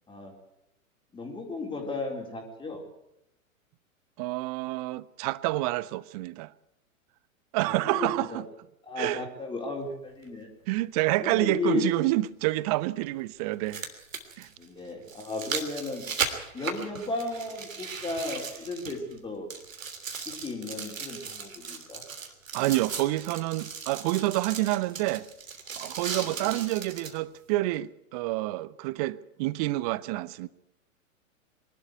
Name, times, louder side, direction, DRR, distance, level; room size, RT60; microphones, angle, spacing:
voice 1, 1.1-2.8 7.7-8.4 8.8-10.5 11.2-11.9 14.6-16.0 16.5-19.5 20.3-22.0 26.2-26.5, left 3 dB, 10° left, 4.0 m, -34 dB
voice 2, 4.2-6.5 7.5-8.4 9.0-9.2 10.7-13.8 14.4-14.5 22.5-25.3 25.8-30.5, right 18 dB, 30° right, 0.6 m, -28 dB
sound 1, 10.2-10.3 12.3-12.4 13.5-19.2 19.5-27.2 27.8-27.9, right 6 dB, 65° right, 3.3 m, -37 dB
23.5 x 12.0 x 9.6 m
figure-of-eight pair, 105°, 42 cm